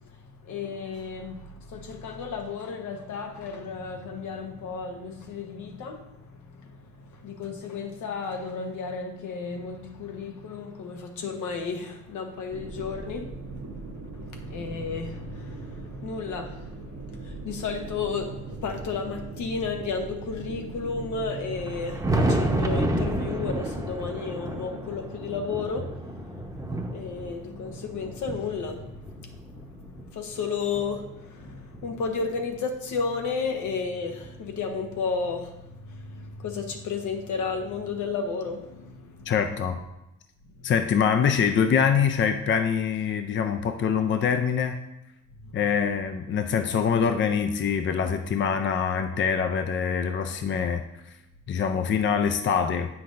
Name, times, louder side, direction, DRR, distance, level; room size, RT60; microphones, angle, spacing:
voice 1, 0.1-13.9 14.2-39.6 40.6-40.7 45.4-45.5 51.5-51.9, left 5 dB, 75° left, 1.0 m, -33 dB
sound 1, 12.5-23.6, right 3 dB, 50° right, 0.8 m, -40 dB
Thunder, 21.5-30.1 30.7-32.4 33.6-33.7 34.2-34.3 36.2-36.3 37.7-37.8 39.3-39.4, right 1 dB, 10° right, 0.8 m, -31 dB
voice 2, 39.3-39.8 40.6-44.8 45.5-50.8 51.5-52.9, left 7 dB, 40° left, 0.5 m, -24 dB
8.2 x 5.9 x 2.6 m
cardioid pair, 90°, 30 cm